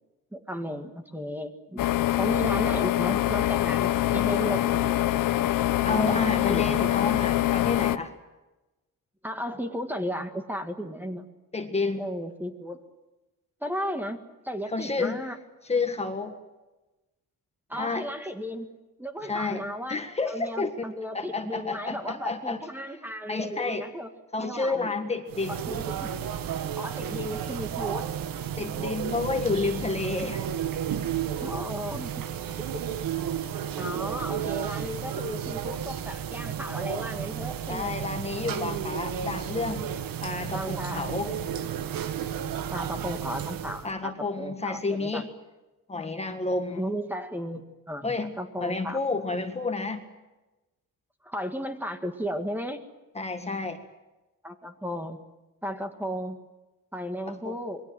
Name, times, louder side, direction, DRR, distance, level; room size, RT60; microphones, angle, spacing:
voice 1, 0.3-1.9 2.2-4.9 5.8-6.2 6.5-6.8 9.2-11.3 12.0-12.8 13.6-14.2 14.4-15.4 17.7-18.7 19.0-20.0 20.3-24.1 24.4-24.9 25.5-26.1 26.8-28.1 31.4-32.1 32.6-32.8 33.8-38.0 38.5-39.0 40.5-41.4 42.7-44.1 44.4-45.2 46.7-49.0 51.2-52.8 54.4-55.2 55.6-56.4 56.9-57.8, equal, 5° right, 6 dB, 1.8 m, -34 dB
sound 1, 1.8-8.0, left 14 dB, 70° left, 1.1 m, -24 dB
voice 2, 5.8-8.2 11.5-12.1 14.7-15.2 15.7-16.4 17.7-18.1 19.2-20.7 21.1-22.6 23.3-23.9 24.3-25.6 28.6-30.5 37.7-39.9 40.2-41.3 43.8-45.3 45.9-46.8 48.0-48.3 48.6-50.1 53.2-53.8 57.3-57.6, left 3 dB, 20° left, 6 dB, 1.7 m, -30 dB
sound 2, 25.3-43.9, right 9 dB, 85° right, 1.9 m, -32 dB
27.5 x 22.5 x 7.7 m, 1.1 s
wide cardioid pair, 175°, 34 cm